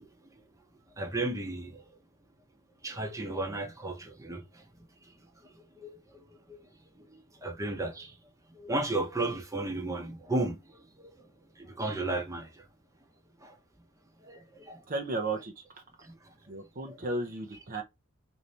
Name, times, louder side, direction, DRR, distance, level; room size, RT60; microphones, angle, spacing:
voice 1, 1.0-1.8 2.8-4.6 5.8-5.9 6.5-6.6 7.0-7.1 7.4-8.1 8.5-10.6 11.0-11.1 11.6-12.6 13.4-13.5 14.2-14.8 16.0-16.1 16.9-17.0, right 2 dB, 15° right, 0.9 m, -34 dB
voice 2, 14.9-15.8 16.5-17.8, right 2 dB, 40° right, 0.6 m, -34 dB
4.1 x 2.7 x 3.1 m
head